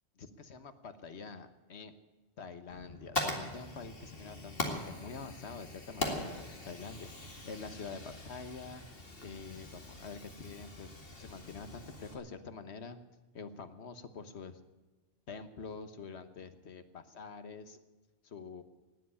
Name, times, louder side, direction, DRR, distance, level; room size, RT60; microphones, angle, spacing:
voice 1, 0.2-1.9 2.4-7.1 7.4-8.8 9.2-10.9 11.2-13.0 13.3-14.6 15.3-17.8 18.2-18.6, left 5 dB, 75° left, 10 dB, 1.4 m, -46 dB
Fire, 2.7-12.1, left 2 dB, 55° left, 2.4 m, -41 dB
18.5 x 8.0 x 9.7 m, 1.2 s
omnidirectional pair, 1.1 m